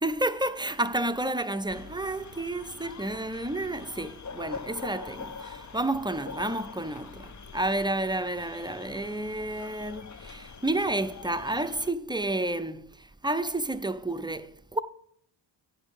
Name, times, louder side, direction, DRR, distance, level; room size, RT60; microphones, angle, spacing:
voice 1, 0.0-14.8, right 1 dB, 10° right, 0.5 m, -30 dB
sound 1, 1.7-11.9, left 5 dB, 40° left, 0.6 m, -44 dB
9.9 x 5.0 x 5.5 m
cardioid pair, 45°, 47 cm